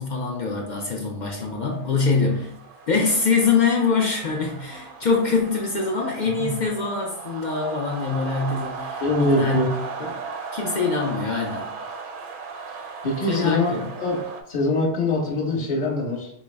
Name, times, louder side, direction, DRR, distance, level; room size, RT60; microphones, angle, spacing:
voice 1, 0.0-2.5 2.9-10.1 10.5-11.7 13.3-13.9, left 4 dB, 55° left, 0 dB, 0.5 m, -24 dB
sound 1, 1.7-14.4, right 5 dB, 55° right, 0.6 m, -36 dB
voice 2, 9.0-9.7 13.0-13.7 14.0-14.2 14.5-16.3, left 2 dB, 35° left, -2 dB, 1.0 m, -23 dB
4.5 x 2.0 x 3.3 m, 0.69 s
omnidirectional pair, 1.2 m